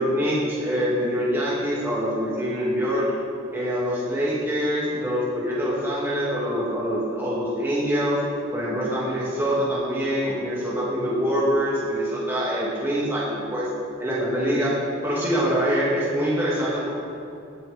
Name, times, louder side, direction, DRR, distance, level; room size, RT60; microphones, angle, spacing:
voice 1, 0.0-3.1 3.5-8.2 8.5-13.7 14.0-14.8 15.0-16.9, equal, 10° right, -8 dB, 2.1 m, -24 dB
18.5 x 9.0 x 3.4 m, 2.5 s
head